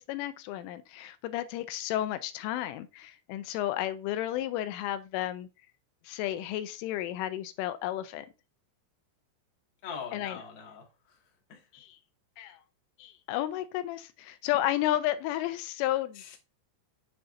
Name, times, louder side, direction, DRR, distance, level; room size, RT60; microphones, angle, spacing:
voice 1, 0.0-5.5 6.0-8.3 10.1-10.4 11.7-12.0 12.4-12.6 13.0-16.4, left 13 dB, 85° left, 3.0 m, -32 dB
voice 2, 9.8-11.7 16.1-16.4, left 6 dB, 50° left, 1.4 m, -43 dB
9.7 x 7.9 x 2.7 m
omnidirectional pair, 5.8 m